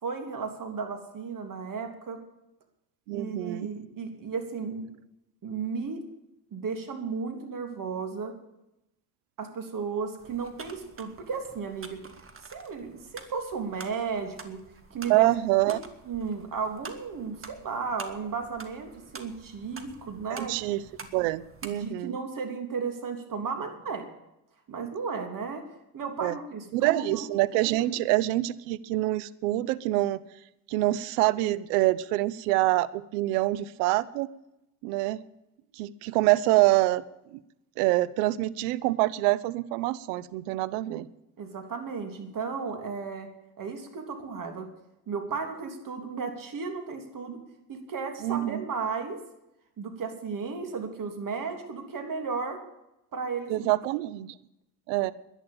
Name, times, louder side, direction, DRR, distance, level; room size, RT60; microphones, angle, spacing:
voice 1, 0.0-2.2 3.1-4.9 5.4-6.0 6.5-8.3 9.4-12.0 12.5-14.6 14.9-15.3 15.7-15.8 16.1-20.5 21.7-24.1 24.7-25.6 25.9-27.3 41.4-43.3 43.6-44.7 45.1-47.4 47.7-49.2 49.8-52.6 53.1-53.7, right 5 dB, 40° right, 5 dB, 3.3 m, -34 dB
voice 2, 3.1-3.7 15.1-15.8 20.3-20.8 21.1-22.2 26.2-26.4 26.7-30.2 30.7-34.3 34.8-35.2 35.7-37.0 37.3-37.4 37.8-41.1 48.2-48.6 53.5-54.3 54.9-55.1, right 17 dB, 75° right, 18 dB, 0.9 m, -26 dB
sound 1, 10.2-21.9, right 4 dB, 25° right, 1.9 m, -47 dB
11.0 x 11.0 x 8.8 m, 0.87 s
hypercardioid pair, 75°, 47 cm